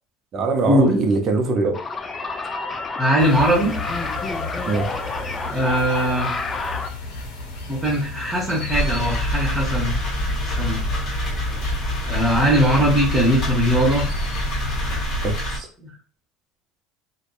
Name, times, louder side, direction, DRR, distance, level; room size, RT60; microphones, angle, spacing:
voice 1, 0.3-1.8 4.6-4.9 15.2-15.7, right 3 dB, 45° right, 0.6 m, -22 dB
sound 1, 1.7-6.9, left 3 dB, 25° left, 0.4 m, -29 dB
voice 2, 3.0-3.7 5.4-6.3 7.7-9.9 10.6-10.8 12.0-14.0 15.8-15.9, equal, 10° right, 0.9 m, -20 dB
sound 2, 3.2-15.4, left 4 dB, 75° left, 0.6 m, -33 dB
sound 3, 8.7-15.6, equal, 45° left, 1.4 m, -26 dB
2.6 x 2.1 x 2.3 m
hypercardioid pair, 85°, 0 cm